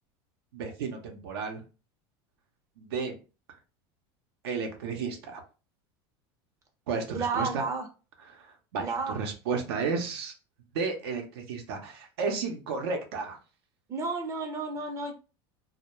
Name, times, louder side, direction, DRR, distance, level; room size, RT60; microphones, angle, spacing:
voice 1, 0.5-1.6 2.8-3.2 4.4-5.4 6.9-7.6 8.2-10.3 10.7-13.4, right 5 dB, 85° right, 4 dB, 0.6 m, -33 dB
voice 2, 7.1-7.9 8.8-9.2 13.9-15.1, right 4 dB, 25° right, 4 dB, 0.4 m, -31 dB
2.2 x 2.0 x 2.9 m, 0.33 s
supercardioid pair, 125°, 13 cm